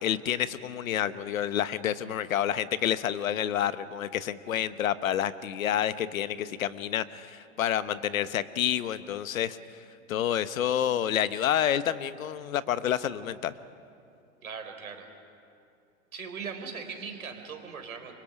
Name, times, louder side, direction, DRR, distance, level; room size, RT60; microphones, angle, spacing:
voice 1, 0.0-9.6 10.1-13.5, left 10 dB, 70° left, 15 dB, 1.1 m, -29 dB
voice 2, 14.4-15.1 16.1-18.1, right 5 dB, 80° right, 5 dB, 4.1 m, -39 dB
28.5 x 24.5 x 6.1 m, 2.5 s
hypercardioid pair, 95°, 42 cm